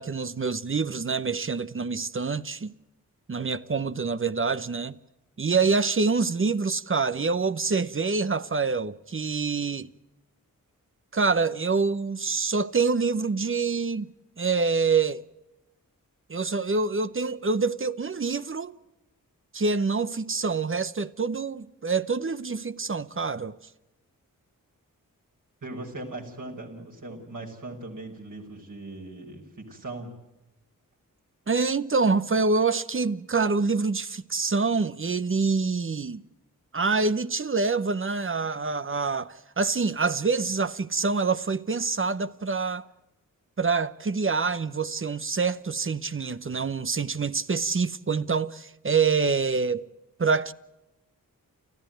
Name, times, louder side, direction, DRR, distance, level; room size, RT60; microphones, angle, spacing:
voice 1, 0.0-2.7 3.3-5.0 5.4-9.9 11.1-14.1 14.4-15.2 16.3-18.7 19.5-23.6 31.5-36.2 36.7-42.8 43.6-49.9 50.2-50.5, right 4 dB, 35° right, 0.9 m, -26 dB
voice 2, 25.6-30.1, right 2 dB, 65° right, 5.5 m, -39 dB
29.5 x 14.0 x 9.2 m
cardioid pair, 50°, 34 cm